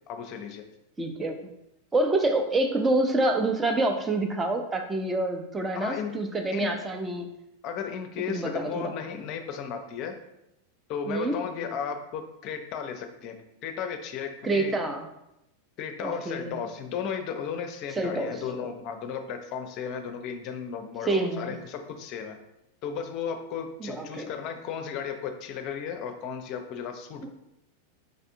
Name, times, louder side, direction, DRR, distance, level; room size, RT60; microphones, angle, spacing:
voice 1, 0.1-0.6 5.7-6.1 6.5-6.7 7.6-10.2 10.9-13.4 13.6-14.7 15.8-22.4 22.8-27.3, left 7 dB, 40° left, 6 dB, 0.5 m, -34 dB
voice 2, 1.0-1.4 1.9-7.3 8.3-8.9 11.1-11.4 14.4-15.1 16.0-16.6 18.0-18.3 21.1-21.5 23.8-24.3 27.2-27.3, right 2 dB, 15° right, 5 dB, 0.6 m, -27 dB
5.2 x 3.3 x 2.7 m, 0.85 s
figure-of-eight pair, 90°, 0 cm